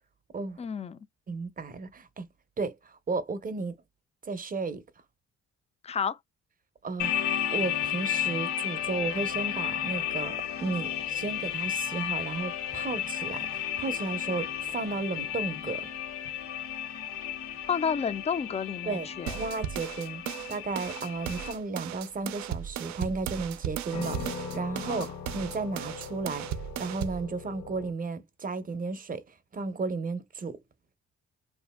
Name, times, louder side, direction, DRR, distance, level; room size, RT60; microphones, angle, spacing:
voice 1, 0.6-1.0 5.8-6.2 17.7-19.4 24.9-25.1, left 6 dB, 20° left, 0.3 m, -31 dB
voice 2, 1.3-2.3 2.6-3.7 4.2-4.8 6.8-15.8 18.9-19.1 19.3-20.2 20.5-26.5 26.8-29.2 29.5-30.6, right 4 dB, 30° right, 0.7 m, -34 dB
sound 1, 7.0-21.5, left 10 dB, 85° left, 1.1 m, -33 dB
sound 2, 8.7-27.9, left 6 dB, 65° left, 0.6 m, -46 dB
sound 3, 19.3-27.3, right 10 dB, 70° right, 0.5 m, -36 dB
2.8 x 2.5 x 2.2 m
cardioid pair, 90°, 30 cm